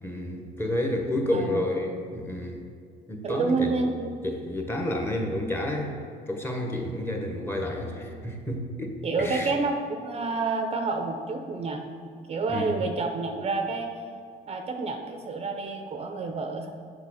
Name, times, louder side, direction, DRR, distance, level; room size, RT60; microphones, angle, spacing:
voice 1, 0.0-2.6 3.1-3.8 4.2-6.0 6.3-9.5 12.5-12.8, left 1 dB, 15° left, 2 dB, 1.1 m, -30 dB
voice 2, 1.3-1.6 3.2-4.2 9.0-9.8 10.0-11.9 12.3-14.0 14.5-16.7, right 3 dB, 35° right, 5 dB, 0.6 m, -29 dB
6.7 x 5.7 x 4.9 m, 2.2 s
cardioid pair, 110°, 17 cm